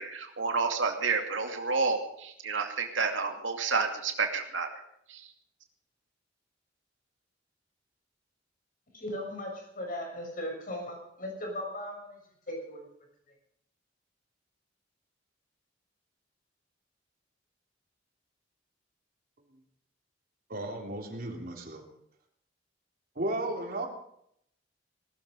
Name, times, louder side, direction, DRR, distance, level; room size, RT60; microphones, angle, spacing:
voice 1, 0.0-4.8 5.1-5.2, right 4 dB, 90° right, 4 dB, 2.5 m, -30 dB
voice 2, 8.9-12.2 12.5-12.9, left 1 dB, 45° left, 1 dB, 6.3 m, -37 dB
voice 3, 20.5-21.8 23.2-23.9, right 1 dB, 50° right, 2 dB, 3.5 m, -34 dB
19.0 x 13.5 x 5.3 m, 0.72 s
head